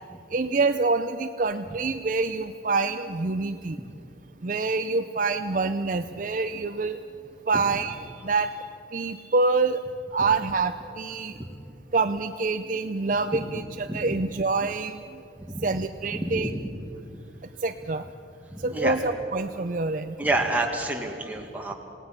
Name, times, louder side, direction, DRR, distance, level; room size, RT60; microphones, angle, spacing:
voice 1, 0.3-3.8 4.4-7.0 7.5-7.9 8.2-8.5 8.9-9.8 10.1-11.4 11.9-15.0 15.6-16.5 17.6-18.0 18.6-20.2, right 3 dB, 45° right, 8 dB, 0.5 m, -26 dB
voice 2, 13.3-14.1 15.4-15.7 16.1-16.6 18.5-19.0 20.2-21.7, right 2 dB, 10° right, 1 dB, 2.0 m, -29 dB
27.5 x 18.5 x 5.9 m, 2.8 s
head